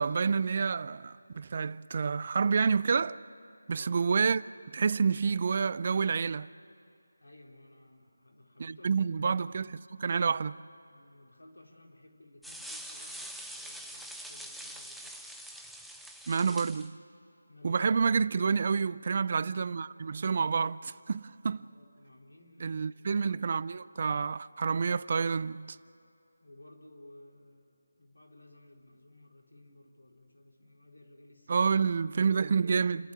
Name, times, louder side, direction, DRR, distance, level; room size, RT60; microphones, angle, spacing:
voice 1, 0.0-3.2 3.7-4.4 4.7-6.5 8.6-10.6 16.3-17.0 17.6-21.7 22.6-25.8 31.5-33.1, right 5 dB, 40° right, 0.4 m, -28 dB
voice 2, 3.7-4.1 7.2-9.0 10.9-15.2 17.5-18.3 21.6-23.2 23.6-23.9 26.4-31.7, left 1 dB, 85° left, 4.1 m, -56 dB
sound 1, 12.4-16.9, right 1 dB, ahead, 0.7 m, -44 dB
29.5 x 11.5 x 9.8 m
figure-of-eight pair, 160°, 0 cm